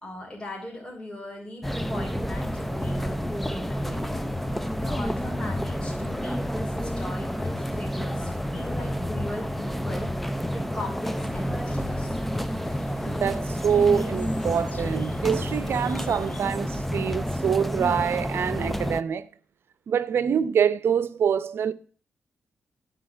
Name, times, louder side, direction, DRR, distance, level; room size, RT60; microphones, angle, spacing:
voice 1, 0.0-4.3 4.8-10.1 10.5-12.2, left 1 dB, 20° left, 3.7 m, -39 dB
sound 1, 1.6-19.0, equal, 5° left, 0.6 m, -29 dB
sound 2, 11.3-16.9, left 4 dB, 40° left, 0.8 m, -44 dB
voice 2, 13.1-19.3 19.9-21.7, right 7 dB, 70° right, 0.7 m, -25 dB
10.0 x 5.2 x 7.1 m
cardioid pair, 90°, 4 cm